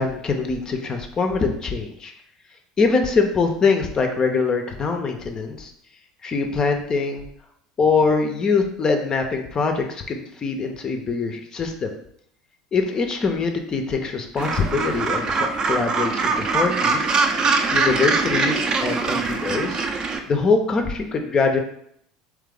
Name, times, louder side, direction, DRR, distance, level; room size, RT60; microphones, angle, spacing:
voice 1, 0.0-2.1 2.8-5.7 6.2-7.2 7.8-11.9 12.7-17.1 17.7-19.8 20.3-21.6, left 4 dB, 30° left, 4 dB, 0.5 m, -23 dB
Gull seagull, 14.4-20.2, right 4 dB, 30° right, 0.5 m, -22 dB
3.7 x 3.2 x 3.5 m, 0.70 s
figure-of-eight pair, 70°, 3 cm